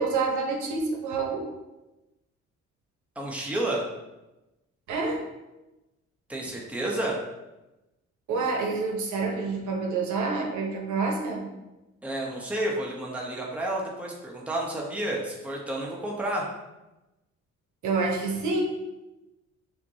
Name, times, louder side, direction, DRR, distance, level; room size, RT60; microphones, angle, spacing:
voice 1, 0.0-1.5 4.9-5.2 8.3-11.4 17.8-18.6, right 4 dB, 75° right, 1 dB, 0.8 m, -27 dB
voice 2, 3.2-3.9 6.3-7.2 12.0-16.5, right 1 dB, 5° right, -3 dB, 0.8 m, -30 dB
5.9 x 2.2 x 2.7 m, 1.0 s
cardioid pair, 90°, 30 cm